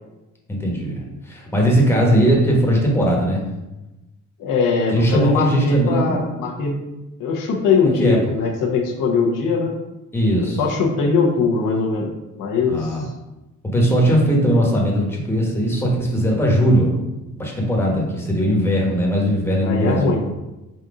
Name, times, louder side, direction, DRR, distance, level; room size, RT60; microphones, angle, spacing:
voice 1, 0.5-3.4 4.9-6.4 8.0-8.4 10.1-10.6 12.7-13.0 13.7-16.9 17.4-20.2, equal, 5° left, -2 dB, 1.2 m, -19 dB
voice 2, 4.4-6.8 7.2-9.7 10.6-12.1 12.4-13.1 19.6-20.2, left 4 dB, 85° left, 0 dB, 0.9 m, -21 dB
4.1 x 2.6 x 4.8 m, 1.0 s
cardioid pair, 110°, 31 cm